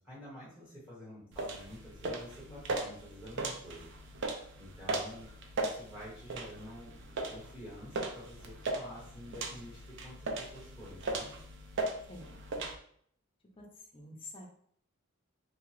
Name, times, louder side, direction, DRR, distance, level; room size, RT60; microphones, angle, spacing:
voice 1, 0.0-3.8 4.6-5.3 5.6-6.9 7.3-11.3, equal, 10° right, -9 dB, 1.3 m, -49 dB
sound 1, 1.3-12.7, right 2 dB, 60° right, 0.4 m, -38 dB
voice 2, 12.1-12.7 13.6-13.7 13.9-14.5, left 2 dB, 25° left, -1 dB, 0.5 m, -49 dB
2.6 x 2.4 x 3.1 m, 0.63 s
head